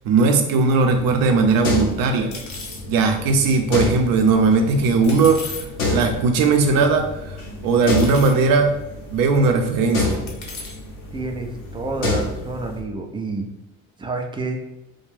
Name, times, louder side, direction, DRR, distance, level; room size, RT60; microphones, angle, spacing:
voice 1, 0.0-2.3 2.9-8.7 9.1-10.2, right 4 dB, 60° right, 4 dB, 0.6 m, -18 dB
sound 1, 0.8-12.8, left 2 dB, 90° left, 0.7 m, -29 dB
sound 2, 1.6-1.7 2.3-2.8 5.0-5.6 6.6-6.7 7.9-8.4 9.2-9.3 10.3-10.8, left 4 dB, 45° left, 0.7 m, -35 dB
voice 2, 11.1-13.5 14.0-14.6, right 3 dB, 15° right, 4 dB, 0.3 m, -28 dB
2.4 x 2.2 x 3.1 m, 0.90 s
hypercardioid pair, 60°, 39 cm